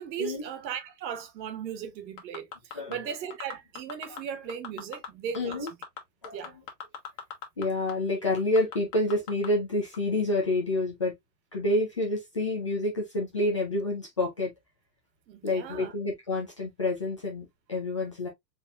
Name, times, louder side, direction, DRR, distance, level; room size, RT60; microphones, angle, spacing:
voice 1, 0.0-5.7 6.3-6.6 15.3-15.9, right 8 dB, 90° right, 1.3 m, -37 dB
sound 1, 2.2-2.9 3.3-4.2 4.5-5.1 5.3-7.6 7.9-8.0 8.4-9.5 9.9-10.0, left 8 dB, 50° left, 1.5 m, -38 dB
voice 2, 5.3-5.7 6.2-6.5 7.6-11.1 11.5-14.5 15.4-18.3, left 2 dB, 20° left, 0.4 m, -28 dB
4.5 x 3.6 x 2.3 m
supercardioid pair, 180°, 50 cm